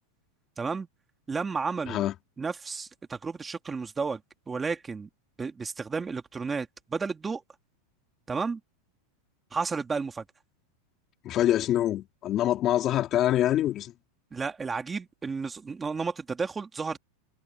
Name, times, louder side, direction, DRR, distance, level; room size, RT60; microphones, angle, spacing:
voice 1, 0.6-0.9 1.3-2.0 2.4-4.2 4.5-5.1 5.4-7.4 8.3-8.6 9.5-10.2 14.3-17.0, right 4 dB, 15° right, 2.5 m, -32 dB
voice 2, 11.2-13.9, left 12 dB, 35° left, 3.4 m, -25 dB
supercardioid pair, 140°, 0 cm